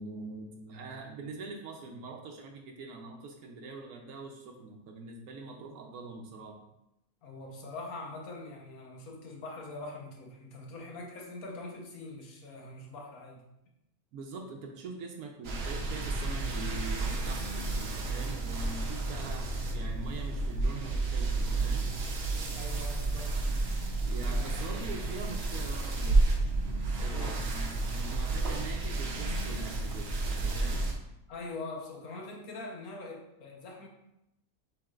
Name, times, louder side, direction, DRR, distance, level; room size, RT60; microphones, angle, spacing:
voice 1, 0.0-6.6 14.1-19.5 19.7-21.9 24.0-26.2 27.0-30.9, right 3 dB, 80° right, 2 dB, 1.1 m, -43 dB
voice 2, 7.2-13.4 22.5-23.4 24.2-24.5 27.1-27.3 31.3-33.9, left 2 dB, 75° left, 0 dB, 1.3 m, -43 dB
sound 1, 15.4-30.9, right 2 dB, 55° right, 0.8 m, -31 dB
6.7 x 3.1 x 2.4 m, 0.86 s
omnidirectional pair, 1.6 m